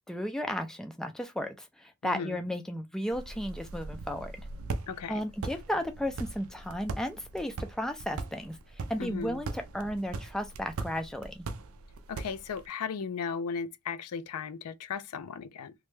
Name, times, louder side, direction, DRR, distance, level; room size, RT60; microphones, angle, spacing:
voice 1, 0.1-4.5 5.1-8.6 8.9-11.4, equal, ahead, 0.3 m, -34 dB
voice 2, 2.0-2.4 4.9-5.3 9.0-9.4 12.1-15.7, left 6 dB, 85° left, 0.4 m, -36 dB
sound 1, 3.1-12.7, right 3 dB, 70° right, 0.5 m, -40 dB
3.0 x 2.2 x 3.1 m
head